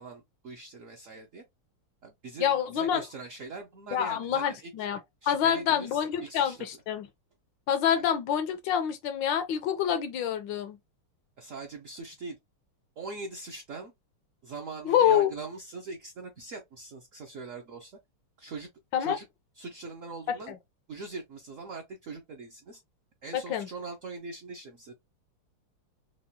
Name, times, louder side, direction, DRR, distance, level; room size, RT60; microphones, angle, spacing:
voice 1, 0.0-1.4 2.0-4.7 5.2-6.6 7.9-8.1 11.4-12.4 13.0-13.9 14.4-18.0 18.4-18.7 19.0-19.3 19.6-20.5 20.9-22.8 23.2-24.9, right 3 dB, 70° right, 0.7 m, -41 dB
voice 2, 2.4-3.0 3.9-5.0 5.3-7.1 7.7-10.8 14.8-15.3 18.9-19.2 20.5-20.6 23.3-23.7, left 9 dB, 75° left, 1.1 m, -27 dB
4.8 x 2.3 x 2.7 m
omnidirectional pair, 2.4 m